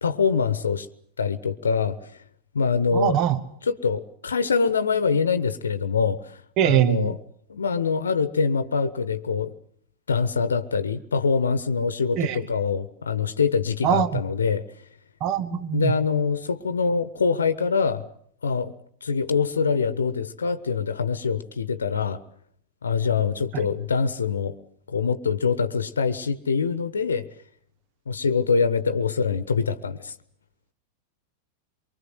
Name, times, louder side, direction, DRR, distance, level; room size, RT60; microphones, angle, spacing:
voice 1, 0.0-0.9 1.2-2.1 2.5-3.2 3.7-7.1 7.5-9.5 10.1-14.7 15.5-18.0 18.4-18.7 19.0-22.2 22.8-24.5 24.9-27.3 28.1-30.1, left 5 dB, 70° left, 13 dB, 1.0 m, -24 dB
voice 2, 2.9-3.4 6.6-7.2 12.2-12.5 13.8-14.2 15.2-15.9 23.5-23.7, right 10 dB, 40° right, 14 dB, 1.2 m, -23 dB
24.5 x 24.0 x 7.9 m, 0.65 s
figure-of-eight pair, 90°, 0 cm